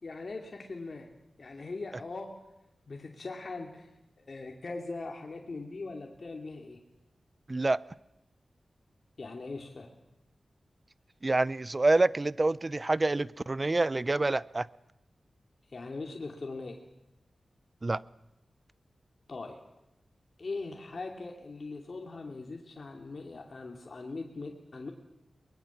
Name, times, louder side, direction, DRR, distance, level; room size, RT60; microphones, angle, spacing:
voice 1, 0.0-1.1 1.4-2.4 2.9-3.9 4.2-6.8 9.2-9.9 15.7-16.8 19.3-19.6 20.4-24.9, left 3 dB, 60° left, 2 dB, 2.6 m, -40 dB
voice 2, 11.2-14.7 17.8-18.0, right 2 dB, 40° right, 19 dB, 0.7 m, -27 dB
23.0 x 20.5 x 7.3 m, 0.88 s
cardioid pair, 40°, 0 cm